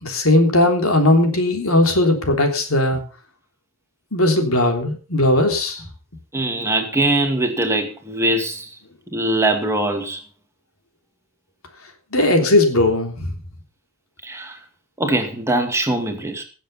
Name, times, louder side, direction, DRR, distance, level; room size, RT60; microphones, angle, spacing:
voice 1, 0.0-3.0 4.1-5.8 12.1-13.3, left 1 dB, 90° left, 3.4 m, -18 dB
voice 2, 6.3-8.7 9.1-10.2 14.2-14.6 15.0-16.4, right 1 dB, 15° right, 2.2 m, -22 dB
17.0 x 7.5 x 5.6 m
head